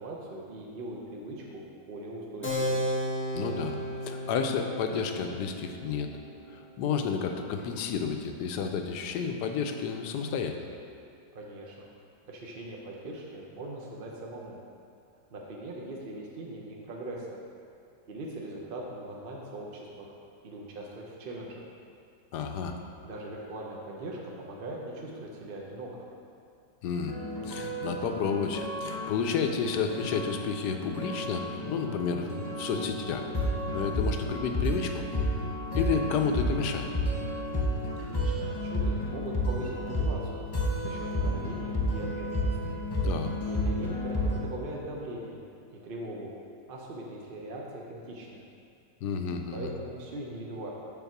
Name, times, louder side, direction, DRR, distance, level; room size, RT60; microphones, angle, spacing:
voice 1, 0.0-2.8 11.3-11.9 12.3-14.6 15.3-17.4 18.1-20.1 20.4-21.6 23.0-26.1 38.0-40.5 40.8-42.7 43.5-45.4 45.8-46.3 46.7-48.5 49.5-50.7, right 1 dB, 50° right, -2 dB, 0.7 m, -40 dB
Keyboard (musical), 2.4-8.5, equal, 10° left, 0.8 m, -35 dB
voice 2, 3.3-3.8 4.1-6.1 6.5-10.6 22.3-22.8 26.8-27.2 27.4-33.3 33.7-35.0 35.7-36.9 43.0-43.3 49.0-49.7, left 6 dB, 75° left, 5 dB, 1.1 m, -31 dB
sound 1, 27.1-44.4, equal, 35° left, 0.3 m, -31 dB
7.1 x 4.0 x 5.9 m, 2.5 s
omnidirectional pair, 1.9 m